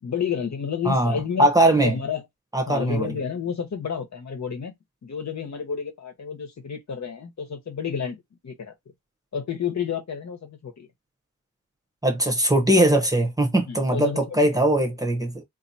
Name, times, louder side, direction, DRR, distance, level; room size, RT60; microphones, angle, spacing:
voice 1, 0.0-2.2 2.7-4.7 5.0-8.7 9.3-10.9 13.7-14.5, left 7 dB, 60° left, 1.1 m, -30 dB
voice 2, 0.8-2.0 2.5-3.1 12.0-15.4, right 1 dB, 10° right, 1.0 m, -21 dB
4.0 x 2.8 x 2.8 m
wide cardioid pair, 120°, 32 cm